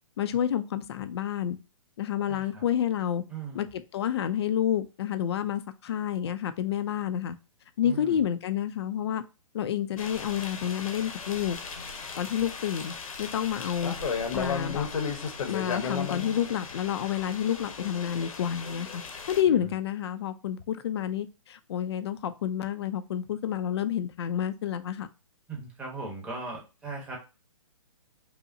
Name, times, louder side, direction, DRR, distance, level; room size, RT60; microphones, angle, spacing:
voice 1, 0.2-1.6 2.0-3.2 3.5-7.4 7.8-9.2 9.5-11.6 12.2-13.9 14.3-14.9 15.5-25.1, left 10 dB, 50° left, 0.4 m, -29 dB
voice 2, 2.3-2.6 3.3-3.7 7.8-8.2 19.5-19.7 25.5-27.2, right 3 dB, 5° right, 1.0 m, -39 dB
sound 1, 10.0-19.4, left 5 dB, 75° left, 1.0 m, -35 dB
5.5 x 2.1 x 2.7 m
hypercardioid pair, 150°, 18 cm